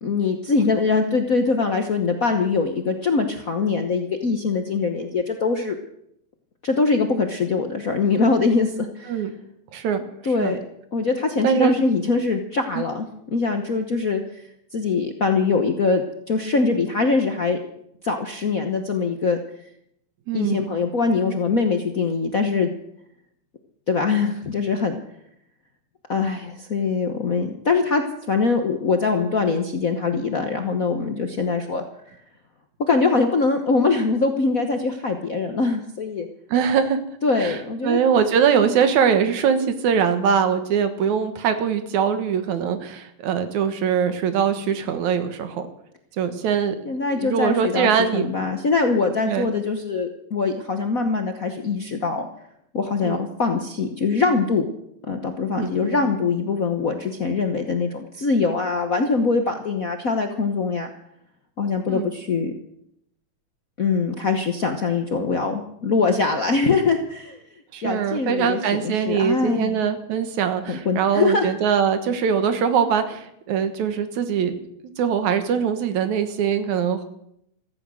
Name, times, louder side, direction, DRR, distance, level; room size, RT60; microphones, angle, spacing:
voice 1, 0.0-5.8 6.6-9.2 10.2-10.6 10.9-14.4 14.7-17.6 18.0-19.4 20.3-22.7 23.9-25.0 26.1-31.8 32.8-36.3 37.2-38.0 38.6-38.8 46.8-52.3 52.7-54.6 55.1-60.9 61.6-62.5 63.8-67.4 67.8-69.8 70.7-71.5, left 4 dB, 75° left, 5 dB, 0.7 m, -23 dB
voice 2, 9.7-10.0 10.4-10.5 11.4-11.8 12.7-12.8 20.3-20.7 36.5-37.0 37.4-45.6 46.2-46.8 47.2-48.3 49.3-49.5 53.0-53.2 55.5-56.0 61.9-62.1 67.7-74.5 75.0-77.0, right 7 dB, 80° right, 9 dB, 2.7 m, -22 dB
14.5 x 14.5 x 6.3 m, 0.75 s
omnidirectional pair, 3.3 m